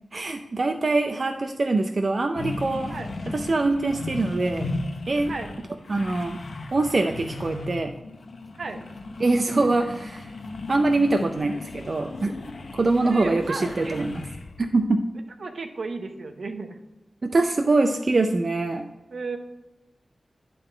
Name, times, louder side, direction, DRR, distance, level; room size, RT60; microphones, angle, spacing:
voice 1, 0.1-2.9 3.3-4.7 5.1-5.3 5.9-6.4 6.7-7.9 9.2-10.3 10.7-12.3 12.7-14.1 14.6-15.0 17.2-18.9, right 2 dB, 50° right, 5 dB, 0.5 m, -23 dB
sound 1, 2.3-14.6, left 2 dB, 70° left, 0.8 m, -36 dB
voice 2, 13.0-14.1 15.4-16.8 19.1-19.4, right 3 dB, 75° right, 6 dB, 0.9 m, -34 dB
11.0 x 3.8 x 4.4 m, 1.0 s
wide cardioid pair, 90°, 0 cm